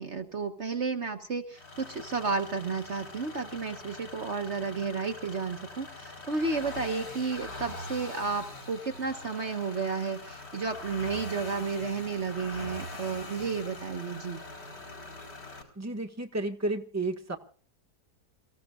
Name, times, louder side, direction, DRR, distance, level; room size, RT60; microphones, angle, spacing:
voice 1, 0.0-14.4, right 4 dB, 50° right, 6 dB, 1.5 m, -32 dB
sound 1, 1.5-15.6, left 2 dB, 80° left, 5.0 m, -43 dB
voice 2, 15.7-17.4, right 2 dB, 10° right, 3 dB, 1.6 m, -32 dB
29.0 x 15.5 x 2.5 m, 0.43 s
omnidirectional pair, 1.6 m